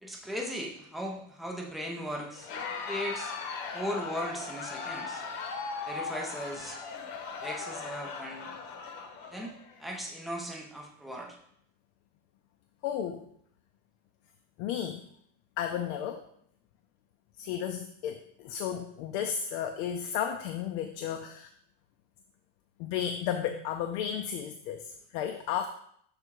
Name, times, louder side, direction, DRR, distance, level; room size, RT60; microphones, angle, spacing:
voice 1, 0.0-2.5 2.9-3.3 3.7-5.2 5.9-6.8 7.4-8.5 9.3-11.4, equal, ahead, 0 dB, 0.3 m, -37 dB
Crowd, 2.3-9.8, left 4 dB, 65° left, 1.0 m, -38 dB
voice 2, 12.8-13.3 14.6-15.0 15.6-16.2 17.4-21.5 22.8-25.7, left 9 dB, 80° left, 7 dB, 0.6 m, -33 dB
6.7 x 3.5 x 4.6 m, 0.68 s
cardioid pair, 180°, 36 cm